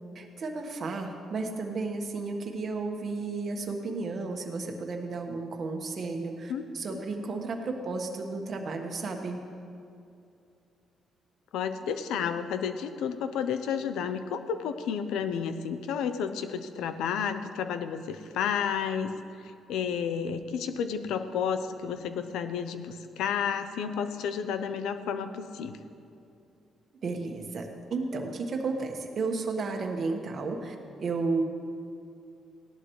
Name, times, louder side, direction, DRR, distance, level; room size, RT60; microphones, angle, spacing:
voice 1, 0.1-9.4 27.0-31.4, right 3 dB, 50° right, 3 dB, 1.4 m, -33 dB
voice 2, 11.5-19.1 19.7-25.8, left 7 dB, 90° left, 10 dB, 0.7 m, -31 dB
17.0 x 11.0 x 3.2 m, 2.5 s
cardioid pair, 90°, 0 cm